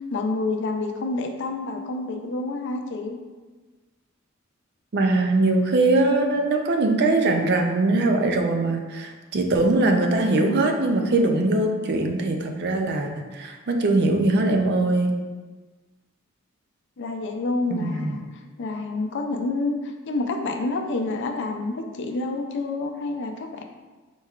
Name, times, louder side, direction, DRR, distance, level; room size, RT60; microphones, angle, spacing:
voice 1, 0.1-3.2 17.0-18.2 18.6-19.8 20.1-23.6, left 2 dB, 60° left, 4 dB, 0.4 m, -28 dB
voice 2, 4.9-15.1 17.7-18.2, right 2 dB, 55° right, 4 dB, 0.5 m, -21 dB
4.5 x 4.3 x 2.4 m, 1.3 s
head